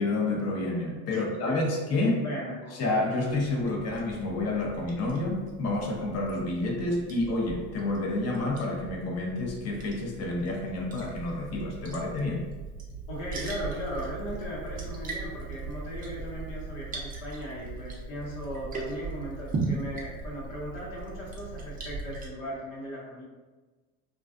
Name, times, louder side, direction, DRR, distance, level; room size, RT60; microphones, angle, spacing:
voice 1, 0.0-2.2 2.7-12.5, left 2 dB, 40° left, 1 dB, 0.6 m, -29 dB
voice 2, 1.1-1.6 2.2-2.6 13.1-23.2, equal, 80° left, -5 dB, 0.9 m, -38 dB
Liquid, 3.3-22.3, right 3 dB, 20° right, 0.5 m, -39 dB
2.4 x 2.3 x 2.4 m, 1.3 s
supercardioid pair, 90°, 40 cm